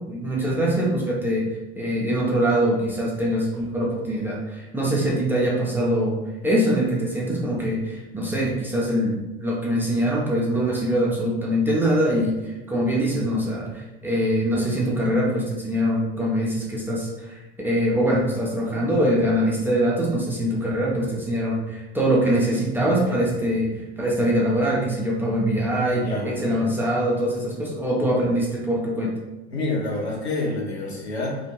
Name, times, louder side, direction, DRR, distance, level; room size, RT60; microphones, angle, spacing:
voice 1, 0.1-17.4 17.6-29.1, equal, 5° right, -5 dB, 0.4 m, -23 dB
voice 2, 26.0-26.7 29.5-31.4, left 2 dB, 80° left, -4 dB, 0.9 m, -28 dB
2.4 x 2.2 x 2.9 m, 1.0 s
figure-of-eight pair, 80°, 32 cm